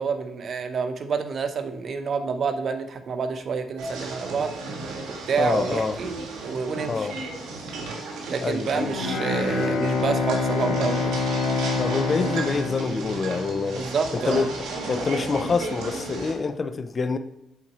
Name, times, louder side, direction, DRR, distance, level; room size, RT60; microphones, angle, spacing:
voice 1, 0.0-4.5 5.3-6.1 6.4-7.1 8.3-11.1 13.7-14.5, right 5 dB, 50° right, 8 dB, 0.7 m, -28 dB
sound 1, 3.8-16.3, right 2 dB, 85° right, 1.4 m, -34 dB
voice 2, 5.4-6.0 6.9-7.2 8.4-9.0 11.8-13.9 14.1-14.5 14.9-17.2, left 4 dB, 40° left, 11 dB, 0.5 m, -26 dB
Bowed string instrument, 8.9-13.8, left 3 dB, 80° left, 1.9 m, -26 dB
7.3 x 4.2 x 4.2 m, 0.82 s
cardioid pair, 90°, 0 cm